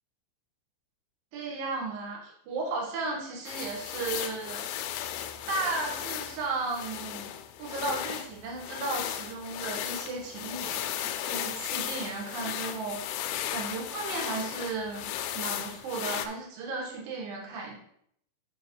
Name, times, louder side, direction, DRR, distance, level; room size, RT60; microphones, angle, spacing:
voice 1, 1.3-4.6 5.5-7.3 7.6-17.8, right 3 dB, 60° right, -2 dB, 2.7 m, -35 dB
sound 1, 3.5-16.3, left 11 dB, 85° left, 3.0 m, -36 dB
8.1 x 6.1 x 3.2 m, 0.70 s
omnidirectional pair, 5.5 m